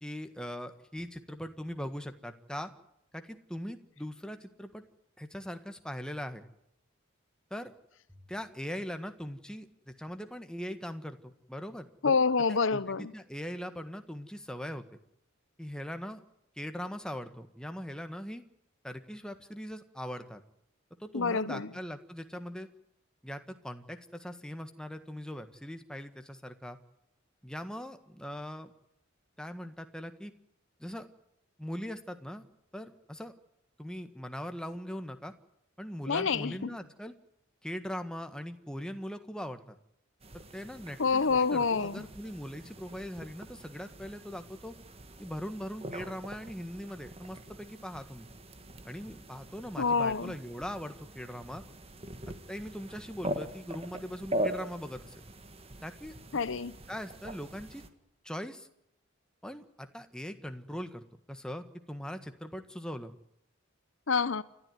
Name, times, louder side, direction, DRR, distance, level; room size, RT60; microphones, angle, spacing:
voice 1, 0.0-2.7 3.1-4.8 5.2-6.4 7.5-7.7 8.1-11.9 12.5-14.8 15.6-16.2 16.6-18.4 18.8-20.4 21.0-22.7 23.2-26.8 27.4-28.7 29.4-30.3 30.8-31.1 31.6-32.4 32.7-33.3 33.8-35.3 35.8-37.1 37.6-39.8 40.3-44.7 45.2-48.3 48.8-51.6 52.5-55.1 55.8-56.1 56.9-57.8 58.2-58.7 59.4-63.1, equal, 5° left, 1.6 m, -40 dB
voice 2, 12.0-13.1 21.1-21.7 36.1-36.7 41.0-42.0 49.8-50.3 56.3-56.7 64.1-64.4, left 5 dB, 70° left, 0.8 m, -27 dB
sound 1, 40.2-57.9, right 1 dB, 30° right, 1.8 m, -42 dB
29.5 x 12.5 x 9.4 m
head